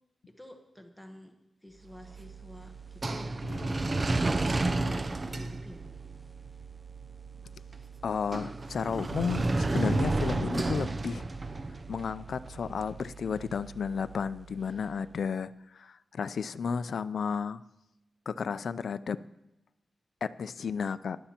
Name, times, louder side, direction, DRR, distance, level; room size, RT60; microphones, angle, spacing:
voice 1, 0.3-5.8, equal, ahead, 4 dB, 1.0 m, -49 dB
sound 1, 1.9-15.0, right 2 dB, 30° right, 0.5 m, -33 dB
voice 2, 8.0-11.3 11.9-17.6 18.3-19.2 20.2-21.2, left 6 dB, 70° left, 14 dB, 0.4 m, -33 dB
18.5 x 11.0 x 2.9 m, 0.87 s
wide cardioid pair, 110°, 0 cm